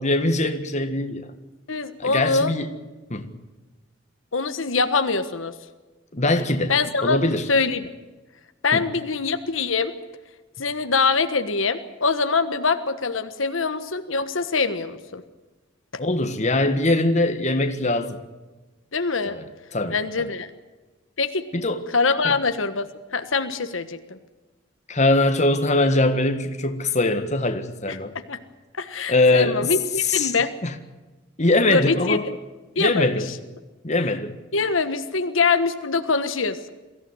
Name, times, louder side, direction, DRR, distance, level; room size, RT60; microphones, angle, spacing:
voice 1, 0.0-1.3 2.0-2.7 3.1-3.3 6.1-6.7 7.0-7.5 8.7-8.8 16.0-18.2 19.3-19.4 19.7-20.3 21.5-21.8 22.2-22.4 24.9-28.1 29.1-29.7 30.0-30.3 30.6-30.7 31.4-32.3 32.8-33.3 33.8-34.3, left 2 dB, 35° left, 1.7 m, -22 dB
voice 2, 1.7-2.5 4.3-5.5 6.7-7.2 7.5-7.9 8.6-9.9 10.6-15.2 18.9-19.4 19.9-20.5 21.2-21.4 21.9-22.9 23.1-24.2 27.9-28.0 28.3-28.4 28.8-30.5 31.7-32.2 32.7-33.4 34.5-36.7, left 4 dB, 75° left, 1.4 m, -23 dB
23.5 x 15.0 x 9.6 m
head